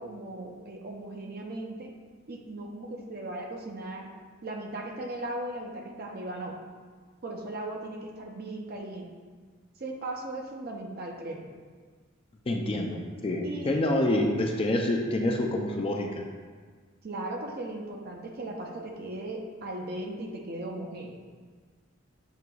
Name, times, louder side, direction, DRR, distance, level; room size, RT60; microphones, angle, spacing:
voice 1, 0.0-1.9 2.3-4.1 4.4-6.6 7.2-9.2 9.8-11.5 13.4-14.2 17.0-21.2, right 1 dB, 45° right, 1 dB, 0.5 m, -37 dB
voice 2, 12.5-16.2, left 1 dB, 25° left, 1 dB, 0.3 m, -27 dB
7.3 x 2.9 x 2.3 m, 1.5 s
head